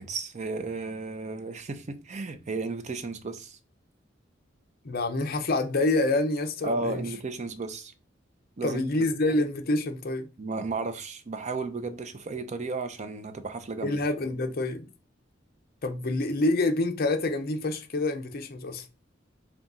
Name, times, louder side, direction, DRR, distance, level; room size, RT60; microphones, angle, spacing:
voice 1, 0.0-3.6 6.6-7.9 8.6-8.9 10.4-14.0, right 3 dB, 35° right, 0.5 m, -34 dB
voice 2, 4.8-7.1 8.6-10.3 13.8-14.9 15.8-18.9, left 2 dB, 50° left, 0.6 m, -27 dB
4.0 x 2.4 x 3.6 m
head